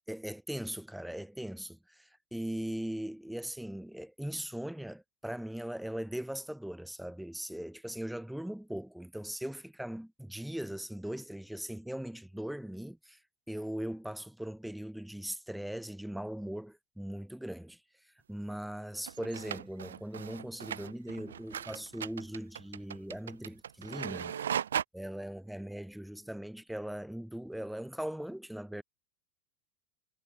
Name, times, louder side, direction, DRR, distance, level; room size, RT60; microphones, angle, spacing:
voice 1, 0.1-13.2 13.5-17.8 18.3-24.4 24.9-28.8, right 1 dB, ahead, 4.6 m, -39 dB
printer close, 19.0-24.8, right 9 dB, 80° right, 0.8 m, -37 dB
hypercardioid pair, 90°, 0 cm